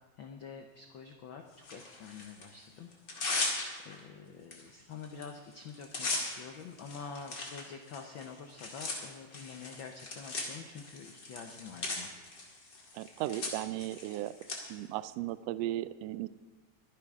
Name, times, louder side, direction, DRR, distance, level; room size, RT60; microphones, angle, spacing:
voice 1, 0.2-2.9 3.4-12.1, left 5 dB, 85° left, 4 dB, 1.1 m, -47 dB
Tearing, 1.6-2.5 2.9-4.0 4.5-4.6 4.9-5.2 5.5-14.6, left 3 dB, 40° left, 2.6 m, -38 dB
voice 2, 12.9-14.4 14.7-16.3, right 14 dB, 85° right, 15 dB, 1.4 m, -36 dB
23.0 x 10.5 x 3.7 m, 1.3 s
omnidirectional pair, 3.4 m